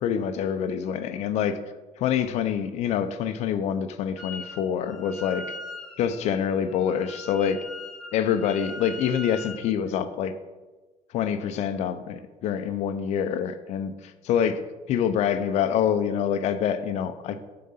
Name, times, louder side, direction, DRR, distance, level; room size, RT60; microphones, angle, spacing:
voice 1, 0.0-1.6 2.0-5.5 6.0-7.6 8.1-10.3 11.1-14.6 14.9-17.4, left 8 dB, 60° left, 10 dB, 0.6 m, -26 dB
Wind instrument woodwind instrument, 4.2-4.6 4.8-9.7, left 2 dB, ahead, 1.4 m, -40 dB
7.2 x 3.8 x 5.6 m, 1.2 s
cardioid pair, 160°, 13 cm